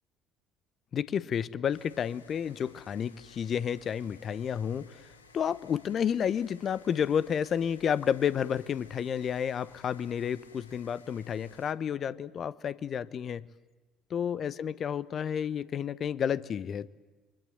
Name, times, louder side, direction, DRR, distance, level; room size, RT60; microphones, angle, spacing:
voice 1, 0.9-5.0 5.3-13.4 14.1-16.9, left 8 dB, 40° left, 18 dB, 0.9 m, -31 dB
sound 1, 1.7-11.7, left 5 dB, 80° left, 1.4 m, -57 dB
29.5 x 24.0 x 7.9 m, 1.2 s
figure-of-eight pair, 55°, 0 cm